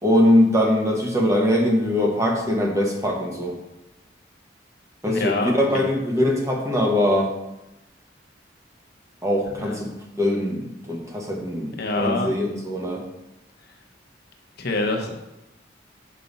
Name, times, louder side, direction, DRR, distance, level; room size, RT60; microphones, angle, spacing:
voice 1, 0.0-3.6 5.0-7.3 9.2-13.0, left 1 dB, 15° right, -1 dB, 1.1 m, -22 dB
voice 2, 5.0-5.8 9.6-9.8 11.8-12.3 14.6-15.2, left 2 dB, 55° left, 2 dB, 0.9 m, -26 dB
6.7 x 5.3 x 4.0 m, 0.90 s
head